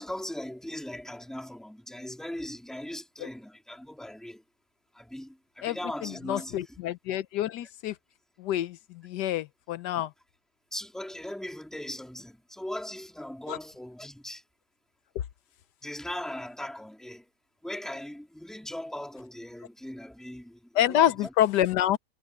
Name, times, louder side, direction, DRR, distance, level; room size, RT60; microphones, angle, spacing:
voice 1, 0.0-4.4 4.9-6.8 10.7-14.4 15.8-17.3 17.6-21.3, left 1 dB, ahead, 3.0 m, -39 dB
voice 2, 6.0-7.9 8.4-10.1 13.5-13.6 20.8-22.0, left 12 dB, 75° left, 1.3 m, -27 dB
omnidirectional pair, 1.9 m